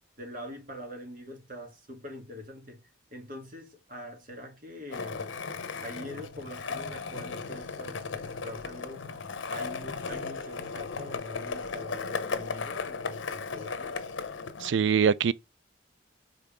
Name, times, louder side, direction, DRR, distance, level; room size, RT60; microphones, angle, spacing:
voice 1, 0.2-2.8 3.1-5.3 5.8-9.1 9.5-14.0, equal, 45° right, 1.9 m, -44 dB
Skateboard, 4.9-14.7, left 4 dB, 80° left, 0.8 m, -36 dB
voice 2, 14.6-15.3, right 7 dB, 70° right, 0.4 m, -23 dB
5.3 x 3.9 x 5.0 m
head